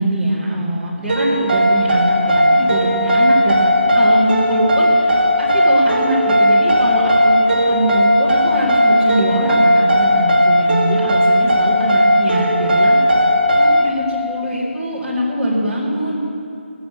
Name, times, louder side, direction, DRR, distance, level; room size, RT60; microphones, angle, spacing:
voice 1, 0.0-7.4 7.7-13.0 13.5-16.2, right 1 dB, 5° right, -11 dB, 2.3 m, -22 dB
sound 1, 1.1-13.9, equal, 50° right, 1.5 m, -15 dB
18.0 x 6.9 x 7.2 m, 2.5 s
figure-of-eight pair, 160°, 7 cm